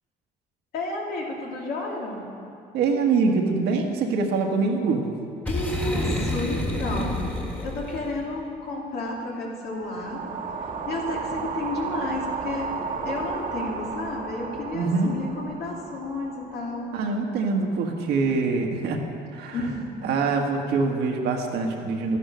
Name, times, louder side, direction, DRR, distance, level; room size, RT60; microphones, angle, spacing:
voice 1, 0.7-2.3 5.5-7.3 7.6-10.2 10.6-12.7 13.0-16.9 19.5-19.9, left 2 dB, 70° left, -2 dB, 2.7 m, -32 dB
voice 2, 2.7-5.1 14.7-15.1 16.9-19.0 19.3-19.7 20.0-22.2, right 4 dB, 75° right, 2 dB, 1.7 m, -24 dB
Boom, 5.4-8.2, left 1 dB, 10° left, 2.0 m, -28 dB
sound 1, 9.7-17.9, right 4 dB, 50° right, 1.4 m, -34 dB
12.5 x 10.0 x 6.4 m, 2.5 s
cardioid pair, 110°, 17 cm